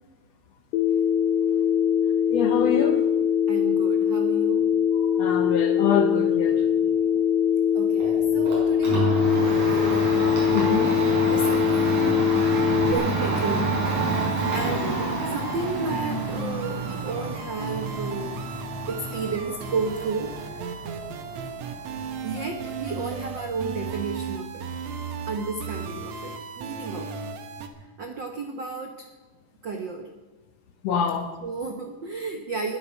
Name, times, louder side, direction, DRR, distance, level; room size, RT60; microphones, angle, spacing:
Telephone, 0.7-12.9, left 8 dB, 85° left, 2.8 m, -22 dB
voice 1, 2.3-3.0 5.1-6.7 10.5-10.9 30.8-31.3, left 7 dB, 65° left, 1.8 m, -25 dB
voice 2, 3.5-4.7 7.7-10.1 10.3-10.9 11.3-12.2 12.8-13.7 14.5-18.4 18.9-20.9 22.2-24.7 25.3-27.2 28.0-29.1 29.6-30.1 31.4-32.8, right 4 dB, 80° right, 1.0 m, -32 dB
Domestic sounds home sounds, 8.0-23.8, right 2 dB, 45° right, 6.3 m, -29 dB
sound 1, 10.9-27.7, right 6 dB, 65° right, 2.2 m, -35 dB
21.0 x 9.0 x 5.8 m
omnidirectional pair, 3.8 m